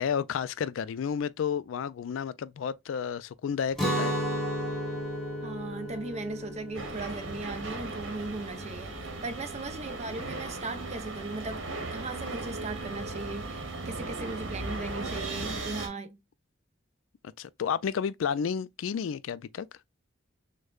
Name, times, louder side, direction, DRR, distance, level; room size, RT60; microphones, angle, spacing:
voice 1, 0.0-4.2 17.4-19.7, left 7 dB, 90° left, 0.3 m, -31 dB
Guitar, 3.7-9.6, equal, ahead, 1.1 m, -34 dB
voice 2, 5.4-16.2, right 3 dB, 35° right, 0.6 m, -38 dB
sound 1, 6.7-15.9, right 2 dB, 80° right, 1.1 m, -37 dB
6.3 x 2.2 x 2.3 m
head